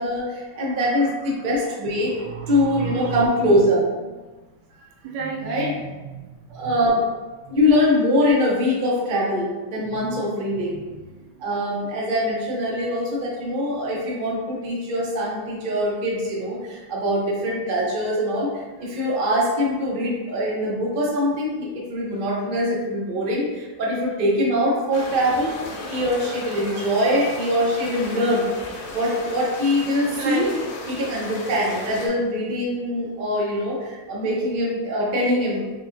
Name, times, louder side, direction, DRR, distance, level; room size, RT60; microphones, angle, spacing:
voice 1, 0.0-2.2 2.5-3.8 5.4-5.7 6.5-7.0 7.5-10.8 11.4-18.5 18.8-25.5 25.9-28.5 28.9-30.5 30.9-35.7, equal, 55° right, -4 dB, 0.5 m, -23 dB
voice 2, 2.0-3.3 4.8-6.8 7.5-7.6 9.9-10.2 10.7-10.8 11.1-11.3 26.5-27.0 30.1-30.7, right 5 dB, 80° right, -1 dB, 1.3 m, -33 dB
sound 1, 24.9-32.1, left 2 dB, 80° left, 1.6 m, -35 dB
5.4 x 2.3 x 2.5 m, 1.2 s
omnidirectional pair, 2.2 m